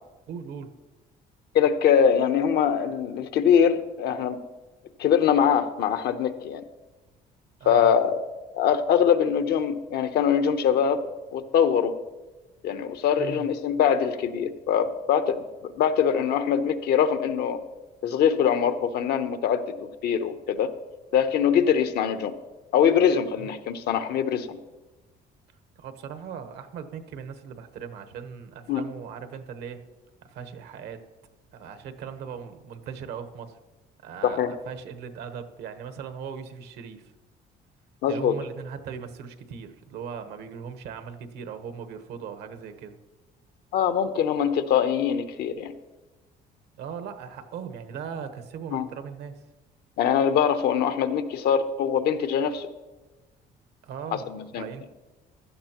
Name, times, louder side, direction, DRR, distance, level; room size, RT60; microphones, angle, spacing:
voice 1, 0.3-0.7 7.6-7.9 13.2-13.5 23.4-23.5 25.8-29.8 30.2-31.0 31.5-33.6 34.0-37.1 38.1-43.0 46.8-49.4 53.8-54.3 54.5-54.9, right 7 dB, 80° right, 8 dB, 1.1 m, -39 dB
voice 2, 1.5-4.4 5.0-6.6 7.7-8.2 8.5-11.0 11.3-12.0 12.6-15.4 15.8-17.6 18.0-19.6 20.0-20.7 21.1-22.3 22.7-24.6 28.7-28.8 34.2-34.5 38.0-38.4 43.7-45.7 48.7-48.8 50.0-52.7 54.1-54.7, left 8 dB, 75° left, 9 dB, 0.8 m, -23 dB
16.0 x 11.5 x 3.0 m, 1.1 s
cardioid pair, 110°, 17 cm